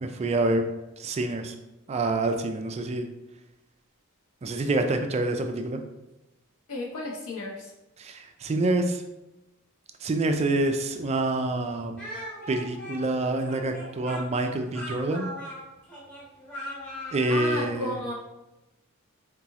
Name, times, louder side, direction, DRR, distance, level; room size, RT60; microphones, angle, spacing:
voice 1, 0.0-0.6 1.0-1.5 1.9-3.1 4.4-5.8 8.0-9.0 10.0-11.9 12.5-15.3 17.1-17.9, right 2 dB, 30° right, 6 dB, 0.3 m, -27 dB
voice 2, 6.7-7.7 17.3-18.1, left 2 dB, 70° left, -2 dB, 0.7 m, -32 dB
Speech, 12.0-17.5, equal, 5° left, 1.2 m, -39 dB
4.0 x 2.9 x 3.5 m, 0.98 s
head